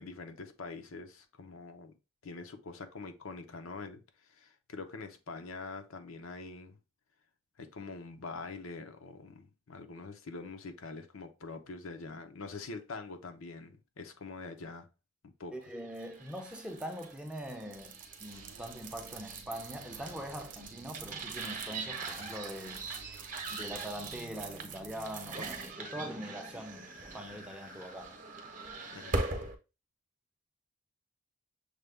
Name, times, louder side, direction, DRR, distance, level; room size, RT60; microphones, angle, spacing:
voice 1, 0.0-1.9 2.2-6.8 7.6-14.9 15.2-15.5 28.9-29.2, left 3 dB, 80° left, 0.7 m, -44 dB
voice 2, 15.5-22.9 23.5-28.2, equal, 5° right, 0.5 m, -43 dB
sound 1, 15.9-29.5, right 3 dB, 40° right, 0.8 m, -41 dB
sound 2, 18.3-27.8, right 5 dB, 75° right, 0.4 m, -56 dB
6.5 x 2.2 x 3.3 m
head